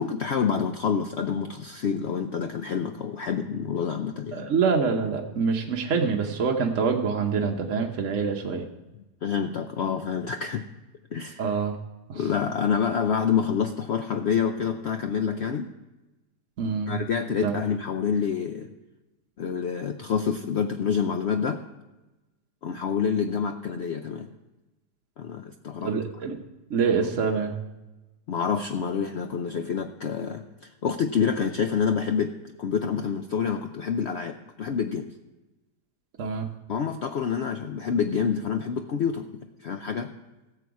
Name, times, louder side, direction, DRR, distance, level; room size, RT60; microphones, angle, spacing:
voice 1, 0.0-4.5 9.2-10.7 11.1-11.6 12.1-15.7 16.9-18.7 19.4-21.6 22.6-24.3 25.2-25.9 28.3-32.3 32.6-35.1 36.7-40.1, left 6 dB, 70° left, 7 dB, 0.6 m, -27 dB
voice 2, 4.3-8.6 11.4-11.7 12.1-12.2 16.6-16.9 17.4-17.5 25.8-26.4 26.7-27.5 36.2-36.5, right 5 dB, 55° right, 1 dB, 1.1 m, -25 dB
17.0 x 7.0 x 4.7 m, 1.1 s
omnidirectional pair, 1.8 m